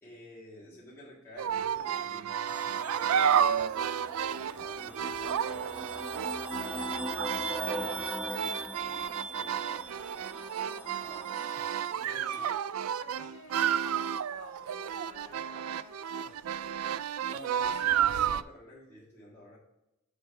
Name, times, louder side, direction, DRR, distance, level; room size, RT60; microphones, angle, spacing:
voice 1, 0.0-6.4 7.1-8.1 9.0-9.7 11.9-12.4 17.3-19.6, equal, 10° left, -9 dB, 1.8 m, -51 dB
sound 1, 1.4-18.4, right 8 dB, 75° right, 0.3 m, -31 dB
sound 2, 2.5-12.2, right 1 dB, 5° right, 0.4 m, -40 dB
voice 2, 10.6-15.8, left 2 dB, 70° left, -3 dB, 1.5 m, -53 dB
sound 3, 14.3-16.7, right 1 dB, 55° right, 2.3 m, -55 dB
7.6 x 5.0 x 4.4 m, 0.88 s
head